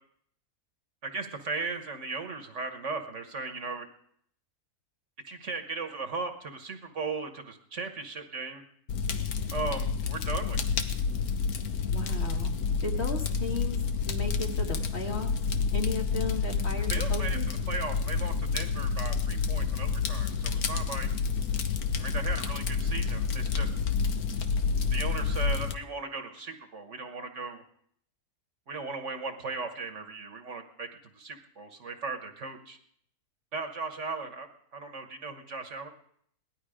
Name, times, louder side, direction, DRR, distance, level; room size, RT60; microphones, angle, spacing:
voice 1, 1.0-3.9 5.3-8.6 9.5-10.8 16.9-21.1 22.0-23.7 24.9-27.6 28.7-30.9 31.1-32.8 33.5-34.5 34.7-35.9, right 4 dB, 55° right, 6 dB, 1.5 m, -37 dB
Fire, 8.9-25.7, left 5 dB, 75° left, 1.5 m, -29 dB
voice 2, 11.9-12.6 12.8-13.8 14.1-15.3 15.7-17.5, left 2 dB, 45° left, 1 dB, 2.0 m, -35 dB
18.0 x 12.5 x 5.0 m, 0.67 s
omnidirectional pair, 1.6 m